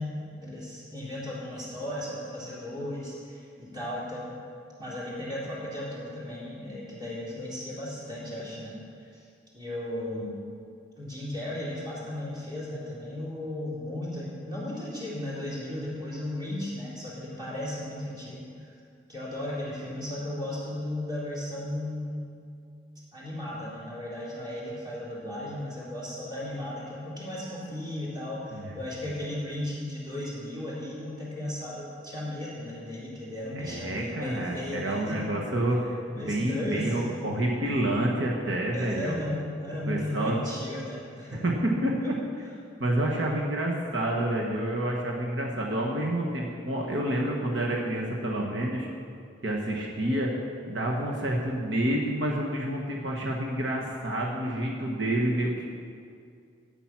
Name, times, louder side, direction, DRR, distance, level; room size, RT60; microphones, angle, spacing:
voice 1, 0.0-4.4 4.8-8.7 9.0-9.3 9.5-10.3 11.0-18.7 19.1-22.3 23.1-35.3 36.1-37.3 38.7-41.4 43.0-43.5 44.2-44.4, left 1 dB, 20° right, -7 dB, 3.7 m, -35 dB
voice 2, 33.5-39.2 39.9-40.5 41.4-41.9 42.8-48.9 49.4-50.3 50.7-55.7, right 1 dB, 75° right, -2 dB, 1.3 m, -28 dB
13.0 x 8.9 x 6.0 m, 2.4 s
head